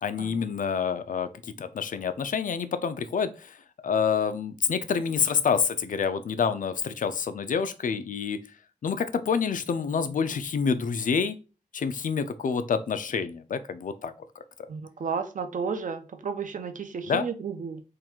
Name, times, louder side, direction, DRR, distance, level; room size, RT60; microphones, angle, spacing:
voice 1, 0.0-3.6 3.8-8.4 8.8-11.4 11.7-14.1 17.0-17.3, left 6 dB, 70° left, 11 dB, 0.5 m, -27 dB
voice 2, 14.7-17.8, right 5 dB, 65° right, 7 dB, 0.6 m, -33 dB
3.7 x 2.4 x 4.4 m, 0.33 s
wide cardioid pair, 115°, 14 cm